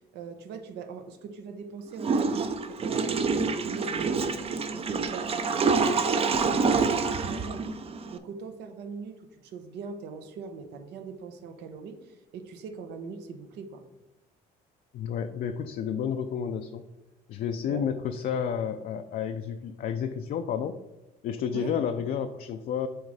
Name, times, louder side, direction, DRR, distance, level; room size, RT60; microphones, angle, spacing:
voice 1, 0.1-7.7 8.1-13.8 17.6-17.9 21.5-21.8, right 5 dB, 85° right, 7 dB, 0.9 m, -41 dB
Water / Toilet flush, 2.0-8.2, right 4 dB, 35° right, 0.5 m, -27 dB
voice 2, 14.9-16.8 17.3-20.8 21.2-22.9, left 7 dB, 60° left, 6 dB, 0.4 m, -31 dB
7.7 x 3.1 x 4.8 m, 0.99 s
cardioid pair, 110°, 17 cm